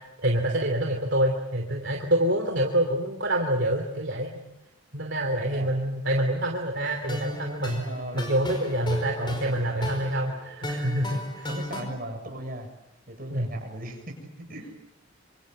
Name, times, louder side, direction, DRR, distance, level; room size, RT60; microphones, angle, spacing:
voice 1, 0.2-4.4 4.9-7.8 8.1-11.5 13.3-13.5, right 1 dB, 60° right, 3 dB, 3.0 m, -26 dB
voice 2, 5.4-5.7 7.6-8.3 9.2-9.9 11.5-12.7 13.1-14.7, right 1 dB, 45° right, 3 dB, 7.0 m, -38 dB
sound 1, 6.8-11.8, left 1 dB, 25° left, 4.8 m, -36 dB
26.5 x 26.5 x 7.8 m, 0.90 s
head